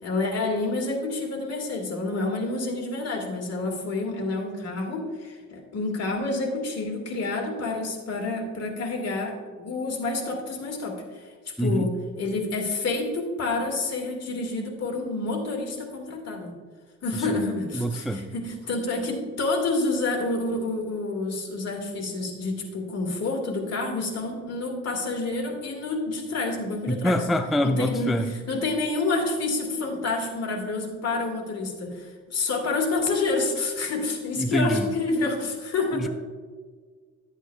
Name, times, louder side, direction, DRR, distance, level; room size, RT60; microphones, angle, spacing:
voice 1, 0.0-11.2 11.6-16.5 17.0-27.2 27.6-36.1, left 3 dB, 55° left, 1 dB, 2.1 m, -28 dB
voice 2, 11.6-11.9 17.3-17.4 17.7-18.2 26.9-28.3 34.4-34.9 35.9-36.1, equal, ahead, 7 dB, 0.4 m, -25 dB
11.5 x 8.1 x 2.4 m, 1.5 s
cardioid pair, 90°, 30 cm